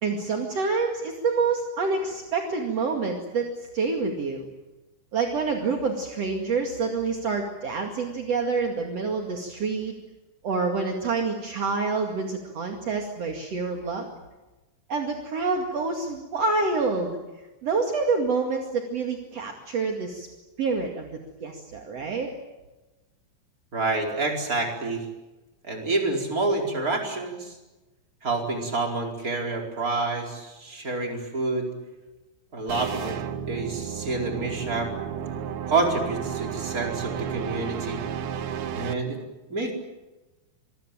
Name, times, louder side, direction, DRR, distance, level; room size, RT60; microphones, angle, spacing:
voice 1, 0.0-3.5 3.7-4.5 5.1-10.0 10.4-14.1 14.9-17.2 17.6-20.3 20.6-21.1 21.4-22.3, right 4 dB, 45° right, 2 dB, 2.1 m, -27 dB
voice 2, 23.7-25.0 25.6-27.6 28.2-31.7 32.5-33.2 33.5-34.9 35.7-38.0 38.7-39.2 39.5-39.7, right 3 dB, 15° right, 2 dB, 4.3 m, -28 dB
sound 1, 32.7-38.9, right 8 dB, 70° right, 2.5 m, -32 dB
27.0 x 22.5 x 9.0 m, 1.1 s
omnidirectional pair, 6.0 m